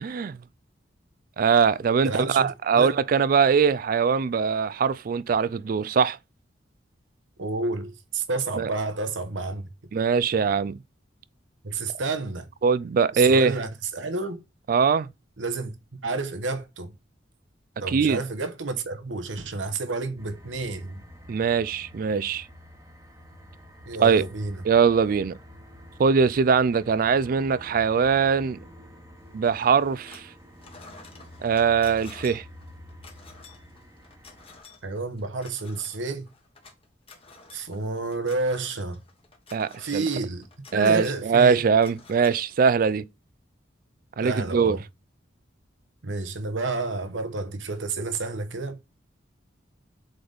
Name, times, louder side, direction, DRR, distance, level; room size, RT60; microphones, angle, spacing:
voice 1, 0.0-0.4 1.4-6.2 8.6-8.7 9.9-10.8 12.6-13.5 14.7-15.1 17.9-18.2 21.3-22.5 24.0-24.2 24.6-25.4 26.0-28.6 29.3-30.3 31.4-32.4 39.5-40.0 40.7-43.0 44.2-44.8, right 6 dB, 50° right, 0.3 m, -21 dB
voice 2, 2.0-2.9 7.4-9.7 11.6-12.5 13.1-14.4 15.4-15.7 16.0-16.9 17.8-21.0 23.9-24.6 34.8-36.2 37.5-39.0 39.8-40.5 40.7-41.7 44.2-44.8 46.0-48.8, right 3 dB, 90° right, 1.0 m, -30 dB
sound 1, 20.2-34.6, equal, 15° right, 1.1 m, -48 dB
sound 2, 29.4-30.3 30.6-43.0, left 4 dB, 30° left, 1.4 m, -51 dB
7.7 x 4.0 x 3.4 m
head